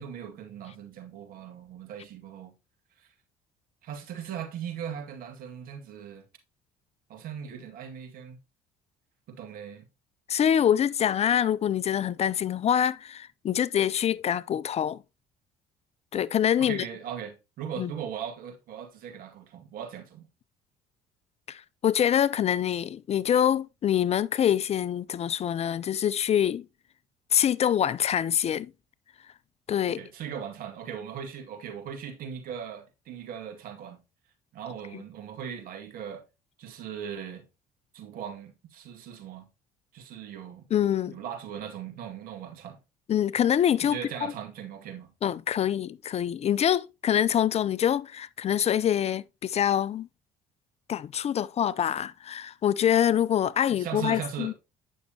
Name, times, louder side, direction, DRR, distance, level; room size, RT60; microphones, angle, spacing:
voice 1, 0.0-2.5 3.0-3.1 3.8-6.2 7.1-8.4 9.3-9.8 14.1-14.2 16.6-20.3 29.9-34.0 34.5-36.2 36.6-37.4 37.9-39.5 39.9-40.7 41.1-42.8 43.8-45.1 53.7-54.5, right 8 dB, 65° right, 2.1 m, -39 dB
voice 2, 10.3-15.0 16.1-16.8 17.8-17.9 21.5-26.6 27.3-28.7 29.7-30.0 34.9-35.0 40.7-41.2 43.1-44.0 45.2-50.1 50.9-54.5, left 9 dB, 40° left, 0.4 m, -25 dB
9.1 x 6.2 x 2.8 m
supercardioid pair, 70°, 16 cm